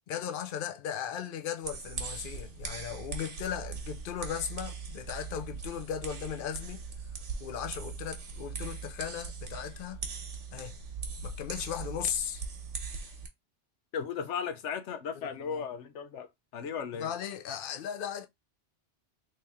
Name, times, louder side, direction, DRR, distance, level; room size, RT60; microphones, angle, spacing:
voice 1, 0.0-6.8 7.4-10.0 10.5-10.8 11.2-12.4 15.1-15.7 17.0-18.3, left 9 dB, 55° left, 0.7 m, -37 dB
sound 1, 1.6-13.3, right 5 dB, 90° right, 1.2 m, -40 dB
voice 2, 13.9-17.1, left 6 dB, 85° left, 1.0 m, -36 dB
3.3 x 2.7 x 3.4 m
omnidirectional pair, 1.2 m